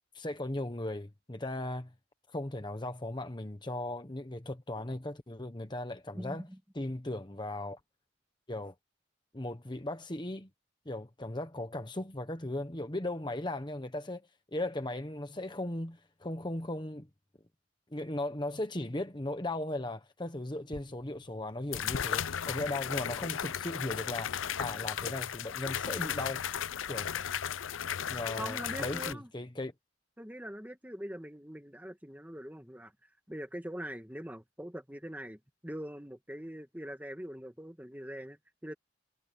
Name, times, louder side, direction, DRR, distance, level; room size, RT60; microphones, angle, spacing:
voice 1, 0.1-1.9 2.3-6.5 6.7-7.8 8.5-8.7 9.3-10.5 10.8-14.2 14.5-17.1 17.9-26.4 26.9-27.1 28.1-29.7, left 1 dB, 25° left, 1.1 m, -37 dB
voice 2, 6.1-6.6 28.4-29.3 30.2-32.9 33.3-38.7, equal, 10° right, 1.7 m, -43 dB
sound 1, 20.7-20.8 21.7-29.1, left 9 dB, 85° left, 0.6 m, -35 dB
head